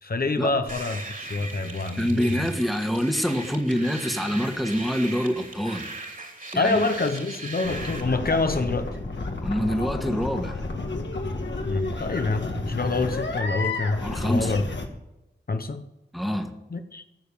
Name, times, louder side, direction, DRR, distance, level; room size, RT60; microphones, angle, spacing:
voice 1, 0.0-2.4 6.5-8.9 11.6-14.0 14.2-14.6 15.5-15.8 16.7-17.0, left 3 dB, 55° left, 7 dB, 0.9 m, -26 dB
sound 1, 0.7-8.0, right 2 dB, 45° right, 2.8 m, -38 dB
voice 2, 2.0-5.8 6.5-6.8 9.4-10.7 14.0-14.5 16.1-16.5, equal, ahead, 5 dB, 1.5 m, -26 dB
sound 2, 7.6-14.9, left 3 dB, 75° left, 1.7 m, -31 dB
15.0 x 6.8 x 7.0 m, 0.95 s
wide cardioid pair, 90°, 19 cm